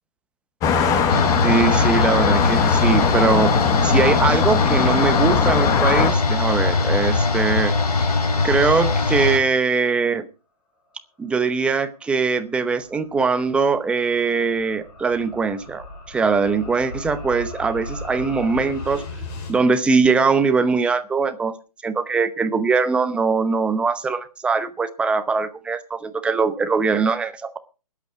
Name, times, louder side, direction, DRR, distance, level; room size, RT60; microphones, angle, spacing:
sound 1, 0.6-6.1, left 7 dB, 15° left, 1.1 m, -21 dB
sound 2, 1.1-9.4, left 3 dB, 75° left, 3.7 m, -21 dB
voice 1, 1.4-3.5 3.8-8.1 8.4-10.3 11.2-19.0 19.5-21.6 21.8-27.6, right 4 dB, 5° right, 10 dB, 0.7 m, -21 dB
sound 3, 11.9-19.6, left 2 dB, 30° left, 6.4 m, -37 dB
20.0 x 8.3 x 4.6 m, 0.34 s
hypercardioid pair, 155°, 20 cm